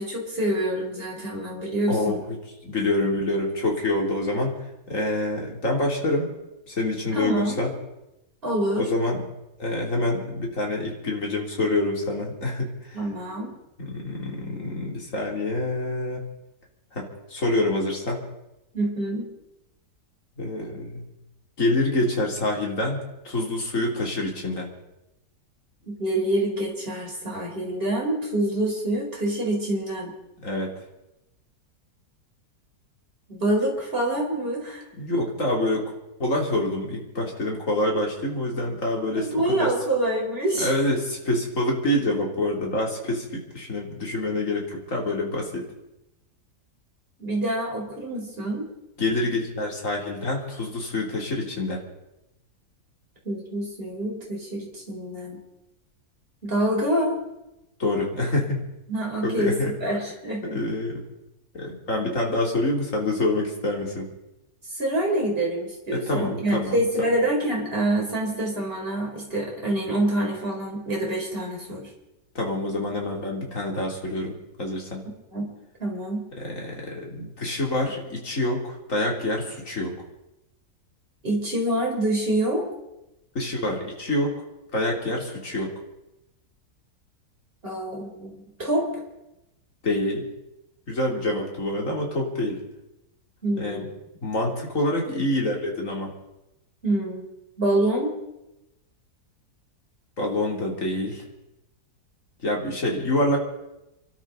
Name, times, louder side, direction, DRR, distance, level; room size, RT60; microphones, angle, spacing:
voice 1, 0.0-2.2 7.1-7.6 8.4-8.9 12.9-13.5 18.7-19.3 25.9-30.1 33.3-34.8 39.2-40.7 47.2-48.7 53.2-55.4 56.4-57.1 58.9-60.6 64.7-71.9 75.3-75.5 75.8-76.2 81.2-82.6 87.6-88.9 93.4-93.8 96.8-97.2 97.6-98.2, right 1 dB, 35° right, -2 dB, 4.6 m, -26 dB
voice 2, 1.9-2.4 2.6-4.6 4.9-6.3 6.7-7.7 8.8-9.2 9.6-13.0 13.8-16.2 16.9-18.2 20.4-21.1 21.6-24.7 30.4-30.7 35.0-35.9 36.2-39.7 40.6-45.6 49.0-51.8 57.8-58.6 59.2-59.7 60.5-61.1 61.5-64.1 65.9-67.1 72.4-75.0 76.4-80.0 83.4-84.3 84.7-85.7 89.8-90.3 90.9-92.6 93.6-93.9 94.2-96.1 100.2-101.2 102.4-103.4, left 1 dB, 50° left, -1 dB, 3.6 m, -26 dB
28.5 x 12.5 x 4.0 m, 0.93 s
omnidirectional pair, 1.8 m